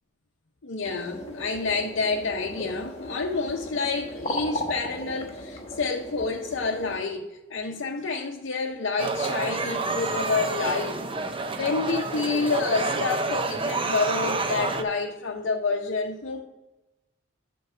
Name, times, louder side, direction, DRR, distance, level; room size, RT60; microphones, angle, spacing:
voice 1, 0.6-11.1 11.5-16.4, left 4 dB, 80° left, 0 dB, 0.7 m, -28 dB
sound 1, 0.8-7.0, equal, 35° left, 1.1 m, -37 dB
sound 2, 9.0-14.8, right 3 dB, 30° right, 0.6 m, -28 dB
8.1 x 4.6 x 5.9 m, 1.0 s
head